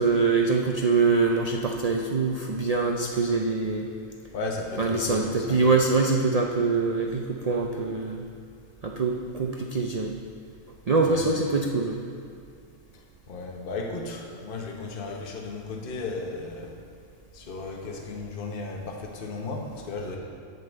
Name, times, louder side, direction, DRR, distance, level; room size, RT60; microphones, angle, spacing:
voice 1, 0.0-3.9 4.8-8.2 8.8-10.1 10.9-12.0, right 4 dB, 70° right, 2 dB, 0.3 m, -24 dB
voice 2, 4.3-5.6 11.0-11.2 13.3-16.8 17.3-20.2, left 3 dB, 45° left, 0 dB, 1.1 m, -35 dB
7.9 x 5.5 x 7.8 m, 2.3 s
omnidirectional pair, 1.4 m